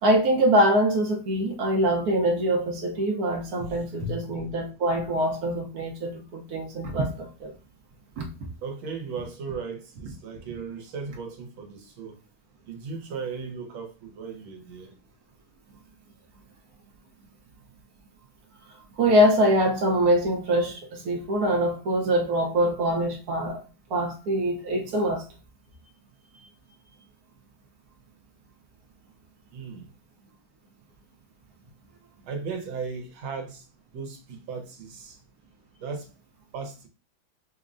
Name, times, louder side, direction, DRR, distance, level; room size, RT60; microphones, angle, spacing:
voice 1, 0.0-7.5 8.2-8.3 18.9-23.6 23.9-25.2, equal, 60° right, 1.1 m, -24 dB
voice 2, 3.6-4.3 8.6-12.2 12.7-14.9 29.5-29.9 32.3-33.7 33.9-35.2 35.8-36.1 36.5-36.9, right 4 dB, 80° right, 1.7 m, -36 dB
5.5 x 2.1 x 2.5 m
omnidirectional pair, 2.2 m